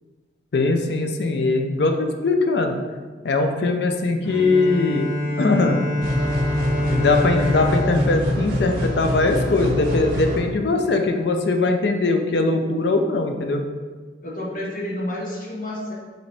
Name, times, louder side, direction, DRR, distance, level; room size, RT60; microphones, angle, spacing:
voice 1, 0.5-2.8 3.2-5.1 5.4-5.8 6.8-13.6, left 3 dB, 65° left, 4 dB, 0.4 m, -21 dB
Bowed string instrument, 4.2-9.7, left 1 dB, 15° left, 1.0 m, -26 dB
sound 1, 6.0-10.4, equal, 50° right, 0.8 m, -25 dB
voice 2, 14.2-15.9, left 1 dB, 45° left, -4 dB, 1.1 m, -30 dB
5.0 x 3.0 x 3.4 m, 1.4 s
head